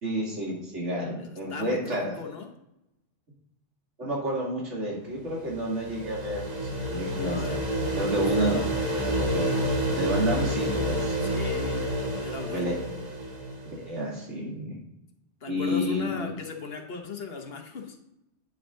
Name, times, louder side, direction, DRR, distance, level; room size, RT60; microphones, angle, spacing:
voice 1, 0.0-2.1 4.0-7.4 8.0-8.6 9.1-9.7 9.9-11.2 12.5-12.8 13.7-14.8 15.5-16.4, equal, 80° right, -4 dB, 2.5 m, -30 dB
voice 2, 1.2-2.5 7.2-8.7 11.2-12.8 15.4-18.0, left 5 dB, 60° left, 4 dB, 1.1 m, -38 dB
sound 1, 5.2-14.0, right 1 dB, 40° right, 1.3 m, -29 dB
9.2 x 5.0 x 3.7 m, 0.86 s
omnidirectional pair, 1.2 m